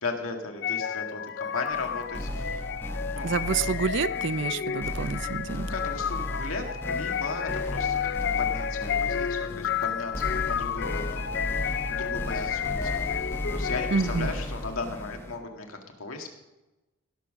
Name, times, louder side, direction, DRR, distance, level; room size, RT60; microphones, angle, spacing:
voice 1, 0.0-2.6 3.1-3.3 5.5-11.3 11.6-16.3, left 3 dB, 75° left, 3 dB, 1.9 m, -37 dB
sound 1, 0.6-14.3, left 8 dB, 50° left, 0.5 m, -31 dB
sound 2, 1.7-15.4, equal, 10° left, 1.2 m, -35 dB
voice 2, 3.2-5.7 13.9-14.3, right 5 dB, 55° right, 15 dB, 0.5 m, -28 dB
17.5 x 7.1 x 6.4 m, 1.0 s
head